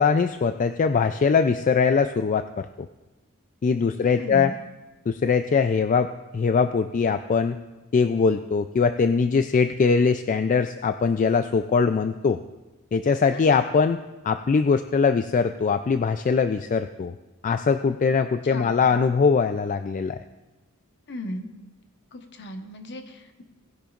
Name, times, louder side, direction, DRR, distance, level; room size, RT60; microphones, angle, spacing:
voice 1, 0.0-2.7 3.6-4.5 5.1-7.6 7.9-12.4 12.9-14.0 14.2-17.1 17.4-20.2, left 5 dB, 35° left, 9 dB, 0.3 m, -22 dB
voice 2, 4.0-4.6 13.3-13.4 18.4-18.8 21.1-21.5 22.1-23.4, left 1 dB, 50° left, 5 dB, 1.1 m, -37 dB
19.0 x 10.0 x 2.5 m, 1.1 s
head